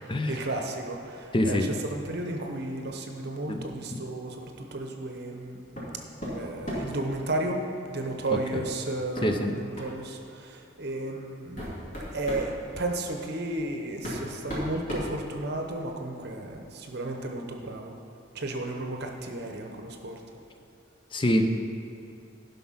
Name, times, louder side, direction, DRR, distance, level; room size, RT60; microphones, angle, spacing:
voice 1, 0.0-5.6 6.3-18.0 18.3-20.2, right 2 dB, 55° right, 3 dB, 0.8 m, -33 dB
voice 2, 1.3-1.6 3.5-3.6 3.9-4.0 9.2-9.5 21.1-21.5, left 1 dB, 25° left, 6 dB, 0.6 m, -24 dB
sound 1, 5.7-5.9 6.2-7.0 8.5-8.7 9.1-9.3 9.7-10.0 10.8-10.9 11.4-12.5 13.5-13.6 14.0-15.8, equal, 40° left, 2.5 m, -35 dB
11.5 x 5.6 x 5.7 m, 2.7 s
head